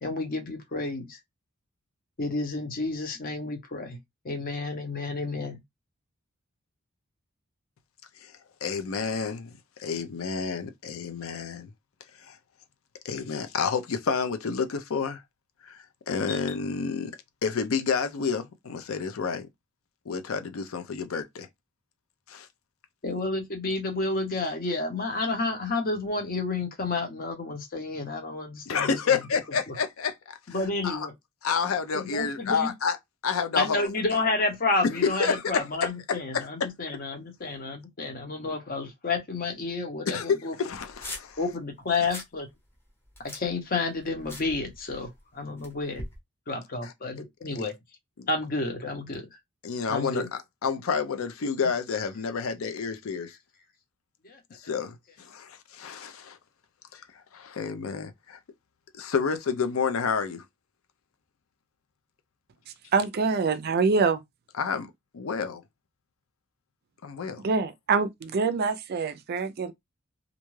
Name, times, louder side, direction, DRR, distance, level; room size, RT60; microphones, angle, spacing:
voice 1, 0.0-1.2 2.2-4.0 4.2-5.6 23.0-29.0 29.7-29.8 30.5-31.1 31.9-32.7 33.6-40.5 41.4-42.5 43.3-46.0 46.5-47.7 48.3-49.3 49.9-50.3 54.2-54.4, left 3 dB, 45° left, 0.8 m, -30 dB
voice 2, 8.6-9.5 9.8-11.7 12.2-12.4 13.0-15.2 15.6-17.1 17.4-19.5 20.1-21.5 22.3-22.5 28.7-30.6 30.8-31.1 31.4-33.0 33.2-33.9 34.9-36.5 40.1-40.3 40.6-41.4 46.8-46.9 48.2-48.3 49.6-53.4 54.5-56.4 56.9-58.4 58.9-60.4 64.6-65.6 67.0-67.4, left 5 dB, 70° left, 0.5 m, -30 dB
sound 1, 40.7-41.4 41.8-42.3 42.7-45.2 45.6-46.2, left 1 dB, 10° left, 0.8 m, -42 dB
voice 3, 62.9-64.2 67.4-69.7, right 4 dB, 50° right, 0.4 m, -25 dB
2.5 x 2.2 x 3.1 m
head